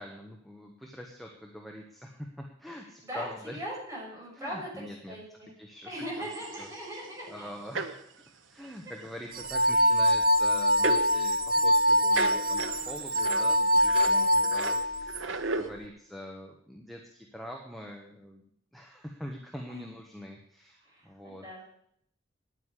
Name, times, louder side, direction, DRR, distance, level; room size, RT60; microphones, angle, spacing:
voice 1, 0.0-2.3 2.6-3.6 4.4-5.2 5.6-6.3 6.6-6.7 7.3-8.1 8.5-15.1 15.5-18.4 18.7-20.8 21.0-21.4, equal, ahead, 1 dB, 1.4 m, -44 dB
voice 2, 3.0-5.5 5.9-7.5 8.6-8.7 13.8-14.5 19.7-19.9 20.8-21.6, equal, 15° right, -4 dB, 6.8 m, -40 dB
sound 1, 6.2-7.1 7.7-8.0 8.6-8.7 9.0-9.1 9.4-9.5 10.4-11.2 11.9-15.7, right 3 dB, 90° right, 1.2 m, -35 dB
sound 2, 9.4-15.2, equal, 50° right, 0.7 m, -24 dB
9.8 x 9.7 x 10.0 m, 0.69 s
head